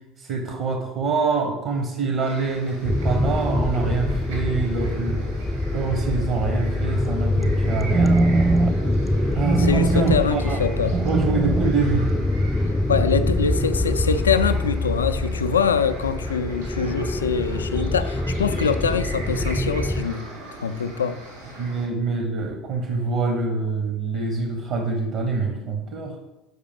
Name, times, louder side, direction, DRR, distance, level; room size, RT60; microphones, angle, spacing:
voice 1, 0.2-5.3 5.7-8.2 9.3-10.6 11.0-12.1 21.6-26.1, right 4 dB, 55° right, 1.0 m, -25 dB
sound 1, 2.2-21.9, right 1 dB, 75° right, 2.4 m, -41 dB
sound 2, 2.8-20.0, left 1 dB, 15° left, 0.5 m, -25 dB
sound 3, 7.2-12.4, right 3 dB, 30° right, 0.7 m, -24 dB
voice 2, 9.6-11.0 12.9-20.3 20.6-21.2, left 6 dB, 80° left, 0.3 m, -24 dB
6.5 x 5.1 x 5.1 m
figure-of-eight pair, 65°, 0 cm